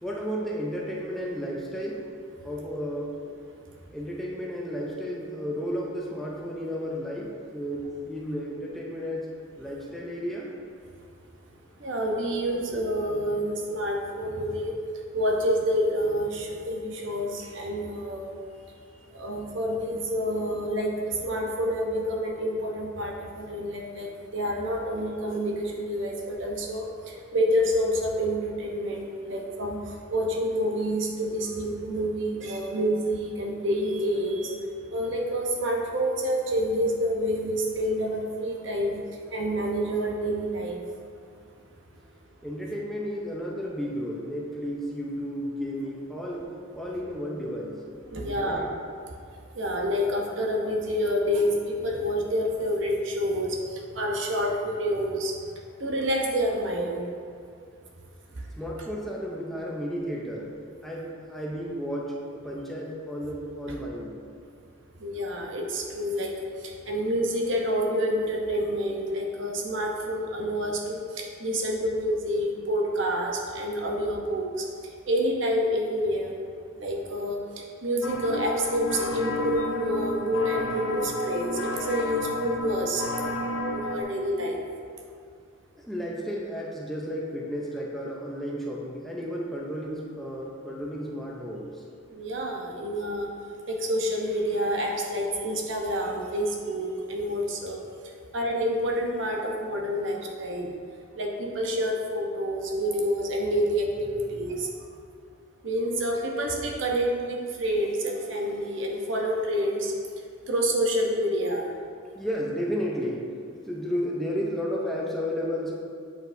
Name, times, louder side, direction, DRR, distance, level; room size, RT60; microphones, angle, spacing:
voice 1, 0.0-2.0 2.4-3.4 3.9-9.3 9.6-10.5 42.4-46.5 46.7-47.8 48.2-48.7 58.6-60.5 60.8-64.2 85.8-91.8 112.1-113.2 113.7-115.8, equal, ahead, -4 dB, 0.5 m, -33 dB
voice 2, 11.8-14.7 15.1-18.4 19.1-34.6 34.9-39.0 39.3-40.8 48.1-48.6 49.6-53.6 53.9-55.3 55.8-57.1 65.0-74.6 75.1-76.3 76.7-77.4 77.8-83.0 83.7-84.6 92.1-93.3 93.7-97.8 98.3-100.7 101.2-104.7 105.6-109.9 110.5-111.7, equal, 65° right, 0 dB, 0.8 m, -28 dB
sound 1, 78.0-84.0, left 2 dB, 85° left, 0.6 m, -31 dB
8.0 x 4.7 x 2.6 m, 2.3 s
head